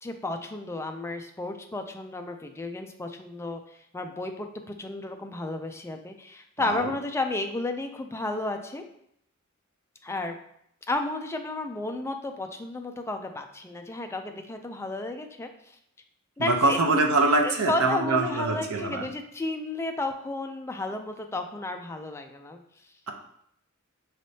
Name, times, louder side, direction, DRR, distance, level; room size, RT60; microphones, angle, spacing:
voice 1, 0.0-4.5 4.8-8.8 10.0-10.4 10.9-15.5 16.4-16.8 17.4-22.6, left 2 dB, 10° left, 5 dB, 0.3 m, -32 dB
voice 2, 6.6-6.9 16.4-19.1, right 2 dB, 80° right, 4 dB, 0.6 m, -24 dB
5.1 x 3.3 x 2.7 m, 0.71 s
head